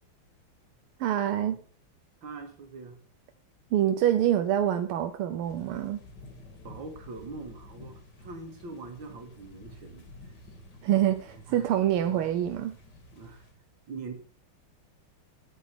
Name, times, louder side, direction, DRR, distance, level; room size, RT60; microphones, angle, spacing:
voice 1, 1.0-1.6 3.7-6.0 10.8-12.8, right 11 dB, 85° right, 1.6 m, -26 dB
voice 2, 2.2-3.0 6.6-10.1 11.3-11.7 12.1-12.3 13.1-13.5 13.9-14.1, right 3 dB, 60° right, 2.6 m, -43 dB
sound 1, 5.4-13.5, left 2 dB, 50° left, 2.7 m, -51 dB
9.2 x 8.3 x 5.9 m
omnidirectional pair, 2.4 m